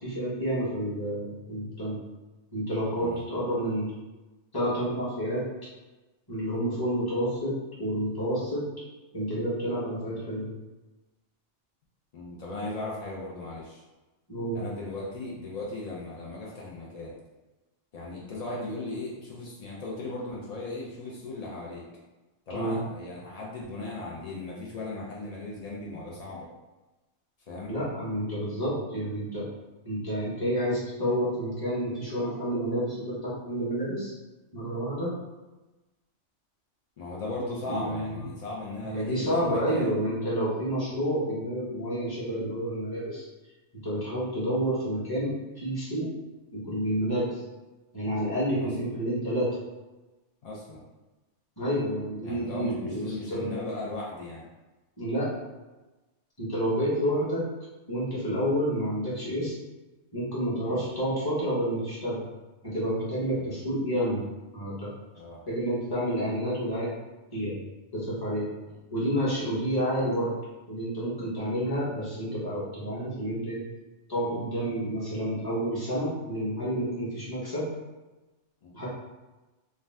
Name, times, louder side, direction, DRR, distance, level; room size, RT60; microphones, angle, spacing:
voice 1, 0.0-2.0 2.5-3.8 4.5-5.5 6.3-8.7 9.1-10.5 14.3-14.6 22.5-22.8 27.7-29.5 29.8-34.1 34.5-35.1 37.7-38.2 38.8-43.2 43.8-46.1 46.5-47.4 47.9-49.6 51.6-53.5 55.0-55.3 56.4-57.4 57.9-59.5 60.1-62.2 62.6-64.2 64.5-64.9 65.5-66.9 67.3-67.6 67.9-68.5 68.9-70.3 70.7-73.6 74.1-77.7 78.7-78.9, equal, 20° left, -9 dB, 0.9 m, -29 dB
voice 2, 2.9-3.2 12.1-13.8 14.5-17.1 17.9-21.8 22.5-26.5 27.5-27.7 37.0-40.0 48.6-48.7 50.4-50.8 52.2-54.5 60.6-60.9 63.3-63.5 65.1-65.5 68.7-68.8 78.6-78.7, left 2 dB, 75° left, -4 dB, 0.3 m, -37 dB
2.5 x 2.2 x 3.2 m, 1.1 s
omnidirectional pair, 1.3 m